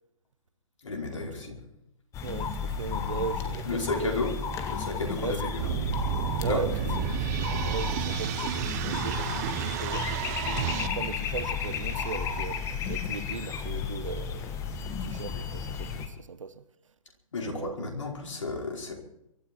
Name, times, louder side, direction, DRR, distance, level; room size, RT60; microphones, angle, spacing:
voice 1, 0.8-1.6 3.7-4.3 4.7-5.6 6.4-6.6 17.3-18.9, left 3 dB, 60° left, 5.1 m, -32 dB
sound 1, 2.1-16.1, left 6 dB, 15° left, 1.5 m, -33 dB
voice 2, 2.2-4.1 5.2-5.5 6.4-6.7 7.0-7.3 7.6-16.6 17.5-17.8, right 6 dB, 60° right, 1.2 m, -38 dB
sound 2, 5.6-10.9, right 10 dB, 30° right, 1.0 m, -31 dB
23.5 x 13.5 x 4.5 m
figure-of-eight pair, 130°, 18 cm